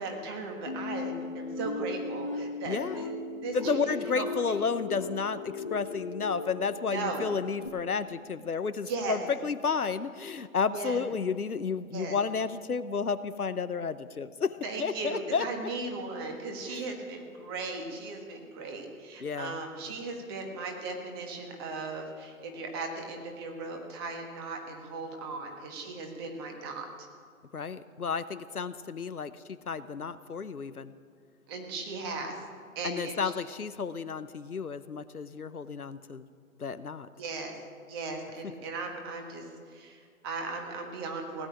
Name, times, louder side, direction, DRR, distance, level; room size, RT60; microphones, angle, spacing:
voice 1, 0.0-3.1 3.4-3.6 3.9-4.6 6.9-7.2 8.9-9.2 10.7-11.0 11.9-12.1 14.6-26.9 31.5-32.3 32.7-33.2 37.2-37.6 37.9-39.4 39.7-41.5, right 3 dB, 15° right, 3 dB, 1.5 m, -37 dB
sound 1, 0.7-7.7, left 3 dB, 20° left, 0.6 m, -37 dB
voice 2, 2.6-3.0 3.5-15.5 16.7-16.9 19.2-19.6 27.5-29.3 29.7-30.9 32.8-36.3 36.6-37.1, left 5 dB, 90° left, 13 dB, 0.9 m, -32 dB
17.0 x 8.3 x 10.0 m, 2.1 s
figure-of-eight pair, 145°, 43 cm